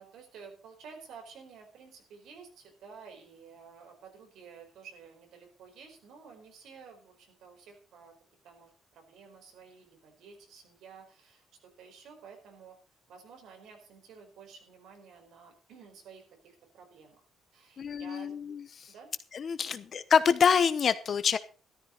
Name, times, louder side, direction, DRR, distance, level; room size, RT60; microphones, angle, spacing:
voice 1, 0.0-8.1 8.4-17.2 17.5-18.3 18.9-19.1 19.7-19.9, right 6 dB, 85° right, 3 dB, 4.8 m, -52 dB
voice 2, 17.8-18.9 19.3-21.4, left 6 dB, 40° left, 14 dB, 0.9 m, -26 dB
14.0 x 13.0 x 4.1 m, 0.35 s
cardioid pair, 150°, 0 cm